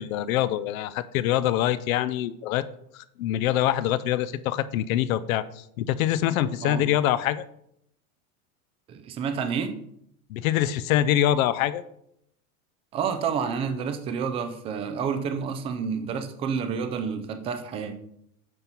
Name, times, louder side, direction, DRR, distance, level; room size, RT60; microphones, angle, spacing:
voice 1, 0.0-2.7 2.9-5.5 5.8-7.4 10.3-11.8, left 12 dB, 70° left, 14 dB, 0.7 m, -24 dB
voice 2, 8.9-9.7 12.9-18.0, right 6 dB, 15° right, 8 dB, 0.3 m, -29 dB
9.6 x 5.4 x 4.5 m, 0.74 s
supercardioid pair, 160°, 43 cm